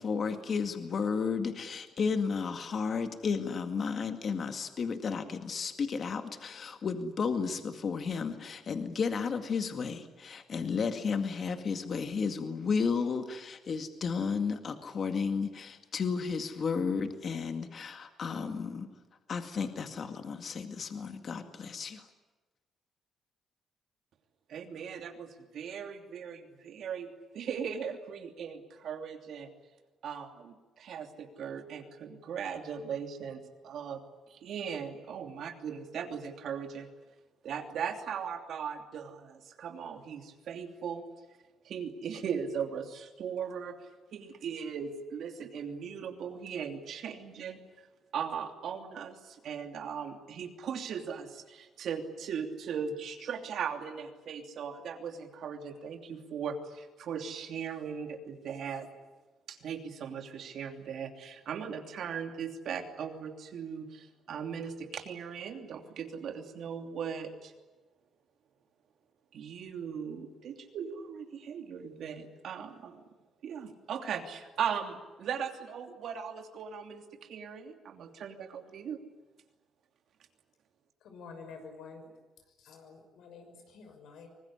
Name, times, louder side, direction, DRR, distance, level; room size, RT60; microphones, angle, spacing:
voice 1, 0.0-18.9 19.3-22.1, left 5 dB, 50° left, 7 dB, 2.0 m, -33 dB
voice 2, 24.5-25.3 25.5-27.1 27.3-29.5 30.0-33.4 33.6-34.0 34.4-36.9 37.4-39.3 39.6-41.0 41.7-43.8 44.1-47.6 48.1-49.1 49.4-58.9 59.5-63.9 64.3-67.5 69.3-73.0 73.4-77.0 77.3-79.0, right 7 dB, 70° right, 5 dB, 2.9 m, -38 dB
voice 3, 81.0-82.0 82.7-84.3, left 5 dB, 80° left, 5 dB, 6.2 m, -49 dB
24.5 x 20.0 x 10.0 m, 1.2 s
cardioid pair, 90°, 0 cm